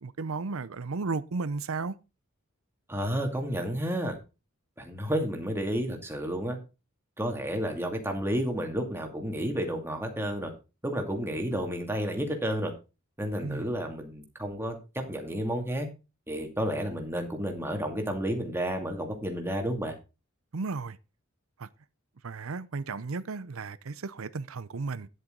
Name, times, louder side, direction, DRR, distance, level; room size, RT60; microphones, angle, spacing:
voice 1, 0.0-2.0 13.4-13.7 20.5-21.0 21.6-21.7 22.2-25.1, right 4 dB, 80° right, 0.6 m, -34 dB
voice 2, 2.9-4.2 4.8-6.6 7.2-10.5 10.8-12.7 13.2-14.8 15.1-15.9 16.3-20.0, equal, 10° right, 2.3 m, -31 dB
10.0 x 8.1 x 3.8 m
head